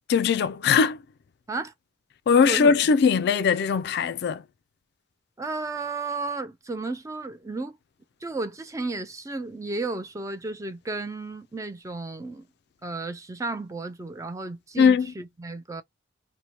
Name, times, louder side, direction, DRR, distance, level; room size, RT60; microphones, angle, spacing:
voice 1, 0.1-1.0 2.3-4.4 14.8-15.1, left 6 dB, 60° left, 0.3 m, -20 dB
voice 2, 5.4-7.8 8.2-12.5 12.8-15.8, right 3 dB, 15° right, 0.4 m, -33 dB
2.8 x 2.1 x 2.8 m
head